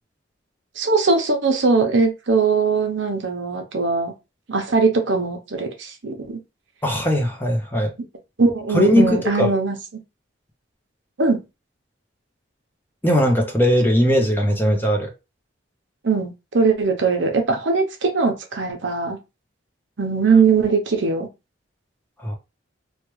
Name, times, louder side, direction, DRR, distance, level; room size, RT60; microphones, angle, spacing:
voice 1, 0.8-4.1 4.5-6.4 8.4-9.8 11.2-11.4 16.0-19.2 20.0-21.3, right 4 dB, 70° right, 0.8 m, -20 dB
voice 2, 6.8-7.9 8.7-9.5 13.0-15.1 22.2-22.4, equal, 10° left, 0.6 m, -19 dB
3.1 x 2.3 x 3.1 m
head